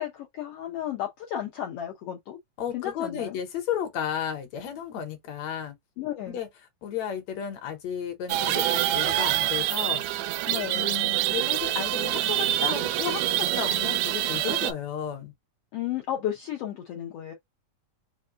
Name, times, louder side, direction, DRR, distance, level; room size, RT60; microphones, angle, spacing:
voice 1, 0.0-2.4 2.7-3.4 6.0-6.4 10.5-10.9 15.7-17.3, left 11 dB, 90° left, 1.3 m, -33 dB
voice 2, 2.6-5.8 6.3-6.5 6.8-10.0 10.7-15.3, left 8 dB, 70° left, 1.8 m, -33 dB
sound 1, 8.3-14.7, right 14 dB, 80° right, 1.8 m, -26 dB
5.2 x 2.2 x 3.7 m
omnidirectional pair, 3.7 m